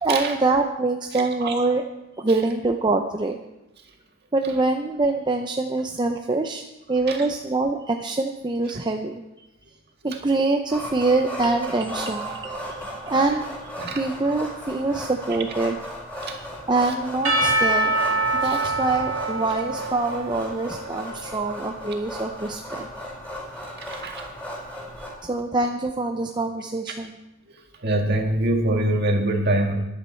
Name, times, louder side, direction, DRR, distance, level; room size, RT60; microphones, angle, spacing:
voice 1, 0.0-1.8 2.2-3.4 4.3-6.6 6.9-9.1 10.0-13.5 13.9-15.8 16.7-17.9 18.4-22.9 25.2-27.2, right 3 dB, 20° right, 4 dB, 0.6 m, -24 dB
voice 2, 1.1-1.5 7.1-7.2 13.8-14.0 16.2-16.4 18.4-18.6 21.5-21.6 23.8-24.2 27.8-29.8, right 1 dB, 45° right, 2 dB, 1.9 m, -24 dB
sound 1, 10.7-25.1, equal, 5° left, 4.5 m, -36 dB
Percussion / Church bell, 17.2-21.2, right 2 dB, 70° right, 3.0 m, -25 dB
14.0 x 11.0 x 4.4 m, 0.96 s
head